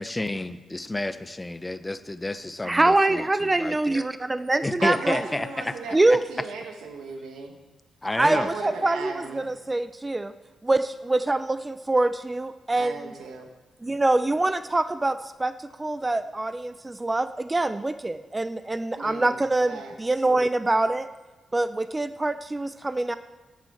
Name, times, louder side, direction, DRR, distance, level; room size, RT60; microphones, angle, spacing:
voice 1, 0.0-4.0 4.6-6.2 8.0-8.5, left 2 dB, 20° left, 12 dB, 0.7 m, -30 dB
voice 2, 2.6-5.2 5.9-6.2 8.2-10.3 10.6-13.1 13.8-15.5 15.8-21.1 21.5-23.2, right 2 dB, 20° right, 11 dB, 0.5 m, -24 dB
voice 3, 4.8-7.6 8.2-9.5 12.7-13.5 19.0-19.9, right 4 dB, 85° right, 4 dB, 1.6 m, -36 dB
12.0 x 7.5 x 7.2 m, 1.2 s
cardioid pair, 65°, 0 cm